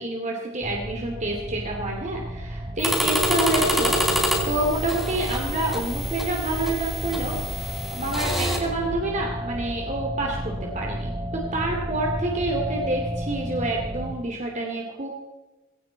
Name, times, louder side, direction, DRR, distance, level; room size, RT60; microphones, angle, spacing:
voice 1, 0.0-15.1, right 2 dB, 35° right, 0 dB, 2.7 m, -28 dB
sound 1, 0.6-14.1, equal, 20° right, 2.3 m, -32 dB
sound 2, 2.8-8.6, equal, ahead, 3.7 m, -27 dB
20.0 x 17.5 x 4.1 m, 1.2 s
head